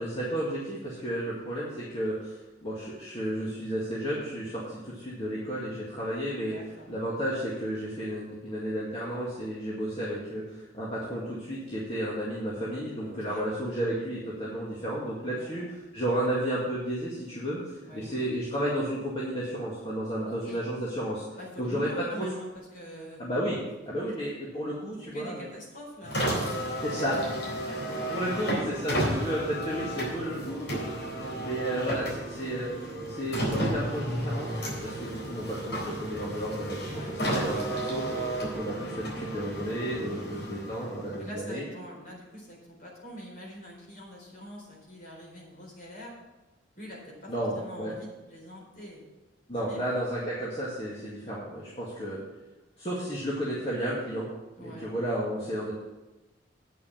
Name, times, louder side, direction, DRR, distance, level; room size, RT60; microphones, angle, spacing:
voice 1, 0.0-6.5 6.9-15.6 15.9-21.2 21.6-22.3 23.2-23.6 23.9-25.5 26.8-27.2 28.1-30.9 31.4-32.8 33.1-36.9 37.2-38.0 38.4-41.7 47.3-47.9 49.5-52.2 52.8-54.3 54.6-55.7, right 1 dB, 30° left, -7 dB, 2.1 m, -32 dB
voice 2, 6.4-6.9 13.0-13.4 15.3-15.7 17.8-18.1 20.2-20.6 21.4-23.2 25.1-26.2 36.9-37.1 40.0-40.5 41.2-46.1 46.7-49.0 49.7-49.8 54.6-54.9, equal, 50° left, -2 dB, 4.3 m, -44 dB
Car, 26.0-41.4, right 1 dB, 75° left, 4.1 m, -33 dB
9.2 x 6.7 x 7.3 m, 1.1 s
head